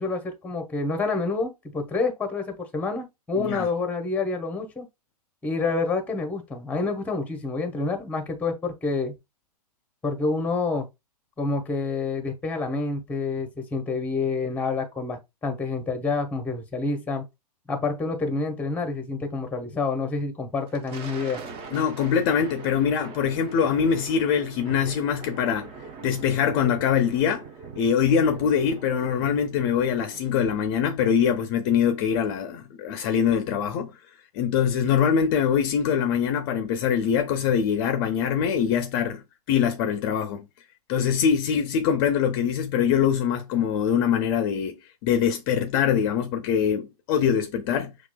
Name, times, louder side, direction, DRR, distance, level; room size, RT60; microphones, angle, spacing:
voice 1, 0.0-4.9 5.4-9.1 10.0-10.9 11.4-17.2 17.7-21.4, left 3 dB, 5° left, 0.8 m, -28 dB
voice 2, 3.4-3.7 21.7-25.7 26.0-27.4 27.8-33.9 34.3-39.2 39.5-40.5 40.9-44.8 45.0-47.9, left 7 dB, 35° left, 0.5 m, -23 dB
Thunder, 20.5-31.3, right 5 dB, 25° right, 0.7 m, -42 dB
5.7 x 2.4 x 2.2 m
hypercardioid pair, 115°, 20 cm